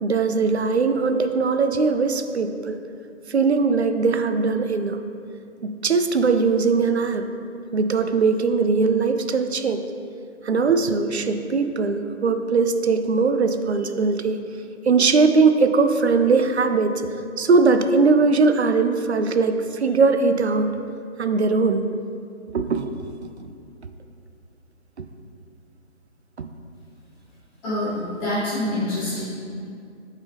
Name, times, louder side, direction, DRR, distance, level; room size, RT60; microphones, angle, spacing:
voice 1, 0.0-2.8 3.3-5.0 5.6-7.3 7.7-9.8 10.4-14.4 14.9-17.0 17.4-20.7 21.2-21.9 22.5-23.1 26.4-26.5, right 4 dB, 60° right, 8 dB, 0.5 m, -20 dB
voice 2, 27.6-29.2, left 1 dB, 5° left, -15 dB, 1.1 m, -26 dB
8.1 x 3.7 x 3.3 m, 2.4 s
figure-of-eight pair, 155°, 37 cm